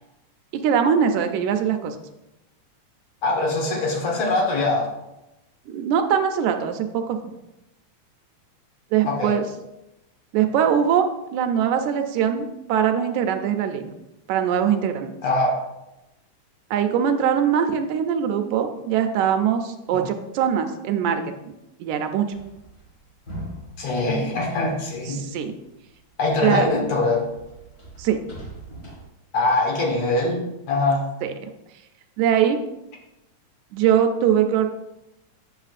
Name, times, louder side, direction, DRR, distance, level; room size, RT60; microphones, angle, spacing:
voice 1, 0.5-2.0 5.7-7.3 8.9-9.4 10.3-13.9 14.3-15.1 16.7-21.3 21.8-22.3 25.1-25.5 26.4-26.7 28.0-28.2 31.2-31.5 32.2-32.6 33.7-34.7, right 8 dB, 80° right, 6 dB, 1.9 m, -22 dB
voice 2, 3.2-4.9 9.0-9.3 15.2-15.6 19.9-20.0 23.8-25.2 26.2-27.3 29.3-31.0, left 2 dB, 65° left, 0 dB, 2.3 m, -23 dB
sound 1, 22.3-25.3 25.7-29.1, right 1 dB, 35° left, 1.8 m, -41 dB
8.8 x 6.3 x 2.4 m, 0.92 s
omnidirectional pair, 3.4 m